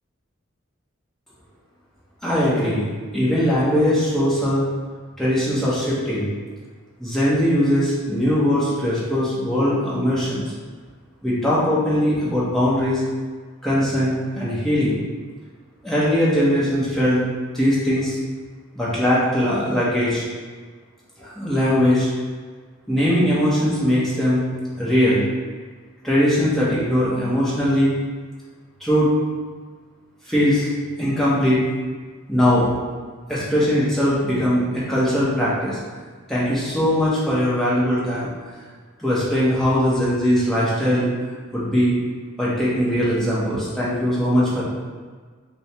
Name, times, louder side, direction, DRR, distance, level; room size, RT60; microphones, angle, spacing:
voice 1, 2.2-2.9 3.1-4.6 5.2-6.3 7.0-10.4 11.2-13.0 13.6-15.0 15.8-17.3 17.5-18.2 18.7-20.2 21.2-22.1 22.9-24.4 24.8-25.2 26.0-27.9 28.8-29.1 30.3-30.7 31.0-31.6 32.3-32.7 33.3-35.8 36.3-38.3 39.0-41.1 41.5-41.9 42.4-44.6, equal, ahead, -9 dB, 1.0 m, -20 dB
4.4 x 2.2 x 4.4 m, 1.5 s
head